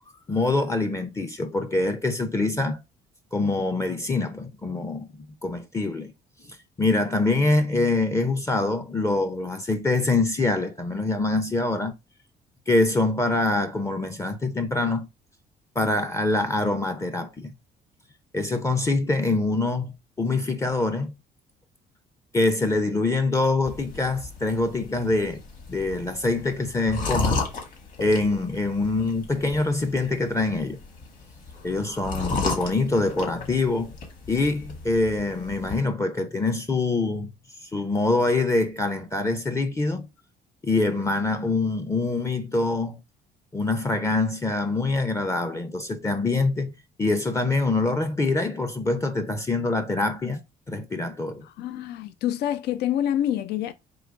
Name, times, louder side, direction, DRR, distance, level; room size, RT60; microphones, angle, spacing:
voice 1, 0.3-2.8 3.3-5.1 5.4-6.1 6.4-11.9 12.7-15.1 15.8-17.5 18.3-19.9 20.2-21.1 22.3-25.4 25.7-27.4 28.0-30.8 31.6-33.9 34.3-37.3 37.7-40.1 40.6-43.0 43.5-46.7 47.0-50.4 50.7-51.5, left 2 dB, 15° left, 0.6 m, -24 dB
sound 1, 23.7-35.8, left 4 dB, 50° left, 1.9 m, -34 dB
voice 2, 51.6-53.7, left 11 dB, 75° left, 0.5 m, -26 dB
3.8 x 3.0 x 4.5 m
cardioid pair, 110°, 17 cm